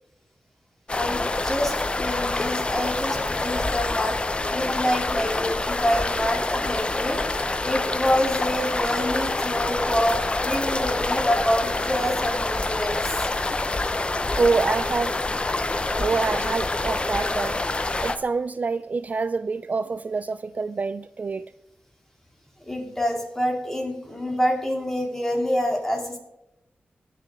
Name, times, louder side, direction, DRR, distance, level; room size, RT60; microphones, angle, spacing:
Close to a small River in the Forest - Austria - Waldviertel, 0.9-18.2, left 2 dB, 30° left, 0.8 m, -26 dB
voice 1, 0.9-4.1 4.5-7.2 7.6-13.3 22.6-26.2, equal, 10° left, 3.2 m, -26 dB
voice 2, 14.4-15.2 16.0-17.6 18.0-21.4, right 4 dB, 45° right, 0.3 m, -26 dB
19.5 x 6.7 x 3.8 m
wide cardioid pair, 90°, 4 cm